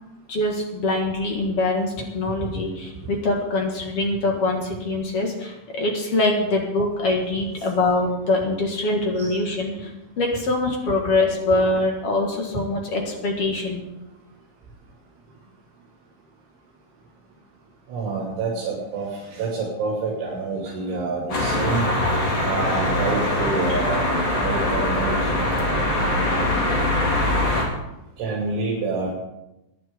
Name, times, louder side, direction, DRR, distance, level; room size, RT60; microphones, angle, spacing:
voice 1, 0.3-9.9 10.2-13.8, left 2 dB, 50° left, 1 dB, 1.8 m, -23 dB
voice 2, 17.9-21.8 22.4-25.4 28.2-29.1, right 3 dB, 80° right, -4 dB, 5.1 m, -27 dB
sound 1, 21.3-27.6, left 1 dB, 30° left, 2.4 m, -22 dB
20.0 x 11.5 x 3.7 m, 0.93 s
omnidirectional pair, 5.4 m